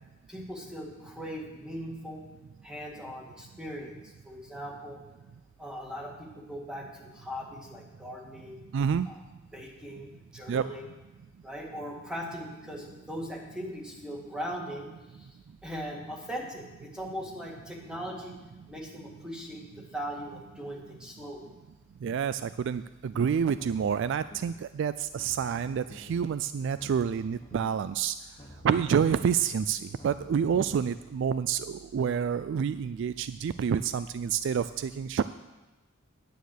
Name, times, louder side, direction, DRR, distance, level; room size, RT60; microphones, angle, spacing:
voice 1, 0.3-2.2 2.6-3.9 4.2-5.0 5.6-8.6 9.1-9.2 9.5-10.8 11.4-15.3 15.6-18.4 18.7-21.5, equal, 5° right, -1 dB, 1.8 m, -39 dB
voice 2, 8.7-9.1 10.5-10.6 22.0-28.1 28.6-35.2, right 7 dB, 65° right, 14 dB, 0.3 m, -28 dB
sound 1, 23.6-24.7 25.0-26.3 26.6-27.9 28.2-31.1, left 1 dB, 25° left, 1.2 m, -51 dB
9.4 x 9.3 x 6.4 m, 1.1 s
head